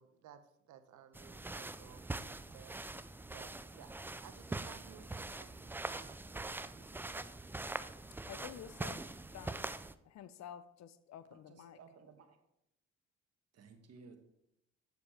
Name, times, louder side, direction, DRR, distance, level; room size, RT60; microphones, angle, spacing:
voice 1, 0.0-2.8 3.2-3.9 4.2-7.3, right 9 dB, 75° right, 0.9 m, -58 dB
sound 1, 1.1-9.9, right 2 dB, 5° right, 0.3 m, -43 dB
voice 2, 8.3-9.0 9.3-9.6 10.0-11.8, left 9 dB, 65° left, 0.6 m, -50 dB
voice 3, 11.4-12.4 13.5-14.2, right 4 dB, 55° right, 1.4 m, -57 dB
8.2 x 6.8 x 4.3 m
cardioid pair, 90°, 30 cm